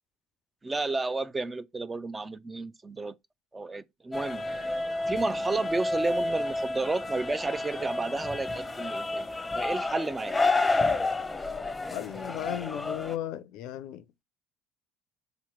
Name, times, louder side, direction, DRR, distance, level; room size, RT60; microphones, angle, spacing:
voice 1, 0.6-3.1 3.5-4.4 5.1-9.3 9.5-10.3, right 3 dB, 20° right, 0.4 m, -31 dB
sound 1, 4.1-13.2, left 2 dB, 15° left, 0.7 m, -30 dB
voice 2, 11.9-14.0, left 12 dB, 70° left, 0.4 m, -36 dB
3.9 x 3.0 x 4.4 m
hypercardioid pair, 65°, 0 cm